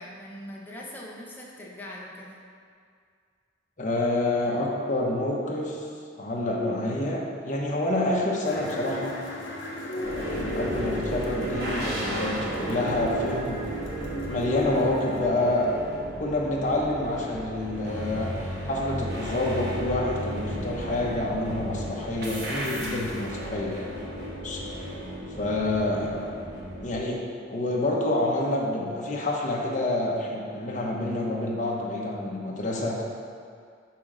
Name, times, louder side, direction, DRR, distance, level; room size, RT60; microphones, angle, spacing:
voice 1, 0.0-2.4, left 1 dB, 10° left, -4 dB, 0.8 m, -41 dB
voice 2, 3.8-5.8 6.2-9.1 9.8-13.7 14.3-23.9 24.4-24.7 25.4-26.3 26.8-27.2 27.5-33.0, left 1 dB, 45° left, -2 dB, 1.0 m, -28 dB
sound 1, 8.4-15.3, equal, 80° left, 1.0 m, -36 dB
sound 2, 10.0-27.0, right 1 dB, 60° right, 1.5 m, -34 dB
6.0 x 3.8 x 6.1 m, 2.2 s
head